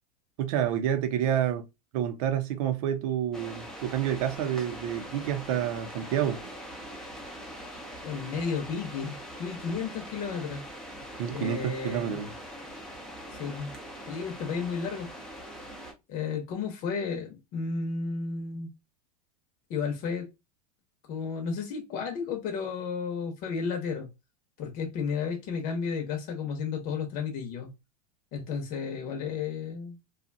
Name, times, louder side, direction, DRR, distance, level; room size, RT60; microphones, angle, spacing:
voice 1, 0.4-1.6 1.9-6.4 11.2-12.3, right 10 dB, 65° right, 0.6 m, -29 dB
sound 1, 3.3-15.9, equal, 5° left, 0.7 m, -43 dB
voice 2, 8.0-10.6 11.3-12.2 13.3-13.7 14.1-15.1 16.1-18.7 19.7-20.3 21.1-24.1 24.6-27.7 28.3-30.0, left 5 dB, 45° left, 0.9 m, -33 dB
2.7 x 2.3 x 2.6 m
supercardioid pair, 130°, 20 cm